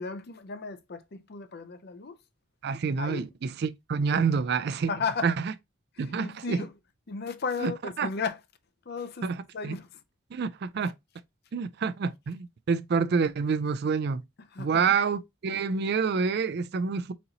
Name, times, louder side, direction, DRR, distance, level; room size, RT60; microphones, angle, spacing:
voice 1, 0.0-2.2 3.0-3.3 4.9-5.3 5.9-6.7 7.1-8.4 8.9-9.3 9.5-10.0 14.5-15.0, left 5 dB, 50° left, 0.5 m, -34 dB
voice 2, 2.6-4.9 5.2-5.3 6.0-6.6 7.6-7.7 8.0-8.1 9.2-9.4 9.6-9.7 10.3-10.9 11.5-14.2 14.6-17.1, right 5 dB, 50° right, 0.4 m, -27 dB
4.1 x 4.0 x 2.8 m
head